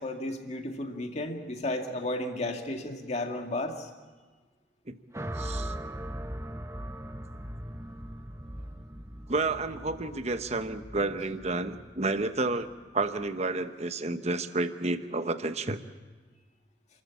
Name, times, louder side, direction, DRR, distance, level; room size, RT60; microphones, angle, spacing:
voice 1, 0.0-3.9, left 1 dB, 40° left, 4 dB, 2.2 m, -33 dB
sound 1, 5.1-13.4, right 1 dB, 15° right, 1.1 m, -40 dB
voice 2, 5.3-5.7 9.3-12.7 12.9-15.8, right 3 dB, 40° right, 9 dB, 1.0 m, -30 dB
29.0 x 14.0 x 8.5 m, 1.4 s
head